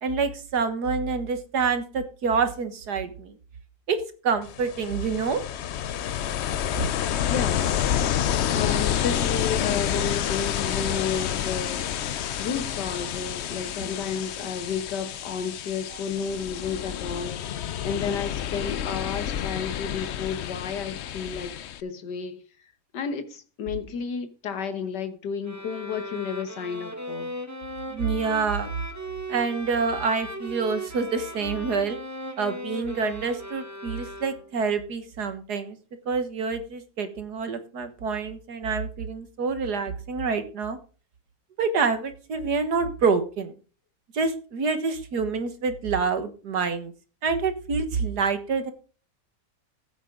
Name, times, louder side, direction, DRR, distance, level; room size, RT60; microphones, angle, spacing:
voice 1, 0.0-3.3 3.9-5.4 27.9-28.7 29.3-32.0 32.4-35.8 36.1-40.8 41.6-43.5 44.1-46.9 47.2-48.7, right 5 dB, 70° right, 2.0 m, -27 dB
Ocean, 4.4-21.8, left 10 dB, 65° left, 0.6 m, -29 dB
voice 2, 7.2-7.7 8.5-22.4 22.9-27.3, left 6 dB, 85° left, 1.9 m, -32 dB
sound 1, 25.4-34.7, equal, 10° right, 1.1 m, -37 dB
15.0 x 8.1 x 3.7 m
omnidirectional pair, 1.8 m